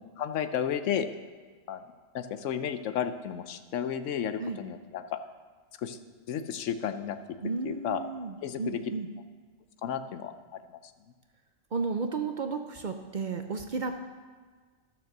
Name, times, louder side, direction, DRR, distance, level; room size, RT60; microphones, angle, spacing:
voice 1, 0.2-1.1 1.7-1.8 2.1-5.2 5.8-6.0 6.3-7.2 7.6-8.0 8.4-8.8 9.8-10.3, left 8 dB, 75° left, 9 dB, 1.0 m, -32 dB
voice 2, 7.4-9.1 11.7-14.0, right 4 dB, 50° right, 6 dB, 0.6 m, -33 dB
12.0 x 6.8 x 6.6 m, 1.5 s
omnidirectional pair, 1.3 m